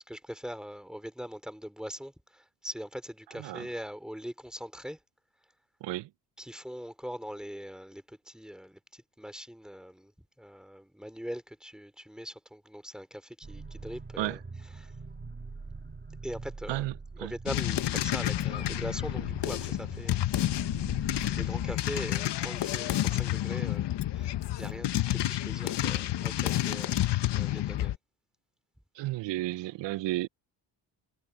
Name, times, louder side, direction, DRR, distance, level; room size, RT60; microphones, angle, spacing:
voice 1, 0.1-5.0 6.4-10.1 10.4-14.4 14.8-14.9 16.2-16.8 17.2-20.2 21.3-27.0 27.3-27.9, equal, ahead, 3.6 m, -41 dB
voice 2, 3.3-3.7 5.8-6.1 14.2-14.4 16.7-16.9 17.2-17.3 29.0-30.3, right 17 dB, 70° right, 0.6 m, -32 dB
sound 1, 13.4-21.8, right 3 dB, 25° right, 3.0 m, -44 dB
sound 2, 17.5-28.0, left 13 dB, 65° left, 1.1 m, -30 dB
cardioid pair, 100°, 45 cm